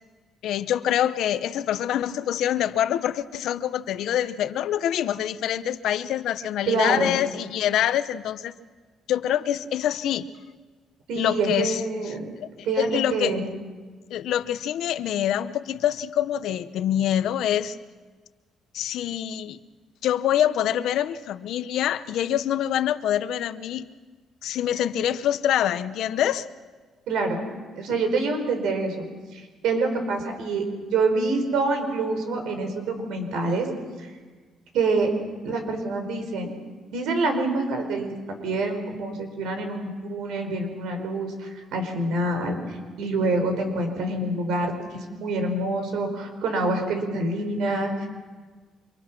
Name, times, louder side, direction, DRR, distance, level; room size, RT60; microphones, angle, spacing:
voice 1, 0.4-8.5 9.1-10.3 11.2-11.8 12.4-12.5 12.8-13.4 14.1-17.8 18.7-19.6 20.0-23.8 24.4-26.4, left 11 dB, 80° left, 13 dB, 0.9 m, -25 dB
voice 2, 6.7-7.1 11.1-12.3 12.6-13.5 27.1-27.4 27.7-29.0 29.3-33.7 34.0-34.1 34.7-35.1 35.4-36.5 36.9-48.1, right 3 dB, 85° right, 5 dB, 4.9 m, -26 dB
30.0 x 25.0 x 6.1 m, 1.4 s
cardioid pair, 120°, 0 cm